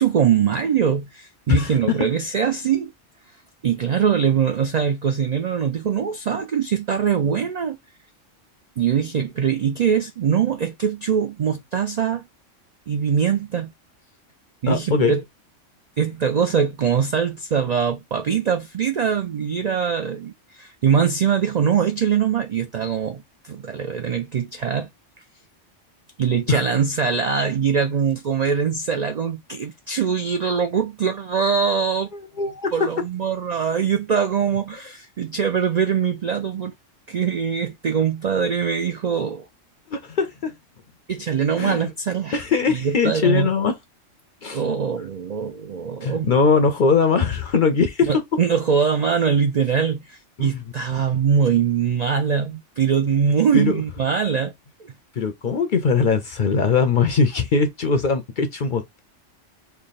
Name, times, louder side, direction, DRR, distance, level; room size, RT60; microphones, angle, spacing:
voice 1, 0.0-2.9 3.6-7.8 8.8-12.3 12.9-13.7 14.6-15.2 16.0-24.9 26.2-32.1 32.7-36.7 37.1-39.5 41.1-43.5 44.5-46.3 48.0-54.5 54.8-54.9, right 7 dB, 65° right, 0.4 m, -22 dB
voice 2, 1.5-2.0 14.7-15.1 26.5-26.6 32.4-32.7 39.9-40.5 41.6-41.9 42.3-43.7 44.4-44.6 46.0-48.1 50.4-50.6 53.5-53.7 55.2-59.0, left 4 dB, 55° left, 0.6 m, -21 dB
3.3 x 2.2 x 4.0 m
omnidirectional pair, 1.3 m